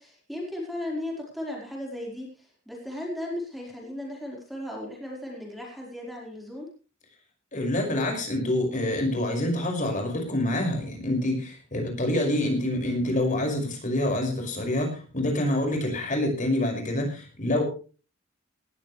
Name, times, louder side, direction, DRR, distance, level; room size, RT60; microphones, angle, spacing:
voice 1, 0.0-6.7, left 1 dB, ahead, -2 dB, 4.4 m, -36 dB
voice 2, 7.5-17.6, left 1 dB, 40° left, 2 dB, 5.7 m, -26 dB
18.5 x 14.5 x 3.3 m, 0.36 s
head